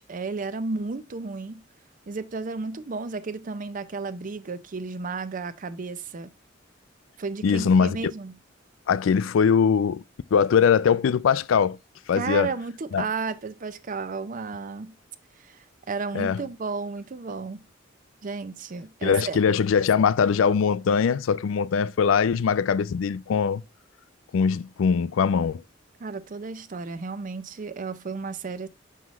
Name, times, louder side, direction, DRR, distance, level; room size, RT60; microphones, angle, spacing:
voice 1, 0.0-1.6 2.1-6.3 7.2-8.4 12.1-14.9 15.4-17.6 18.2-19.4 26.0-28.7, right 4 dB, 45° right, 0.5 m, -33 dB
voice 2, 7.4-8.0 8.9-10.0 10.3-11.8 12.1-12.5 12.9-13.0 16.1-16.4 19.0-23.6 24.3-25.6, left 6 dB, 90° left, 0.4 m, -21 dB
6.2 x 5.7 x 3.0 m
head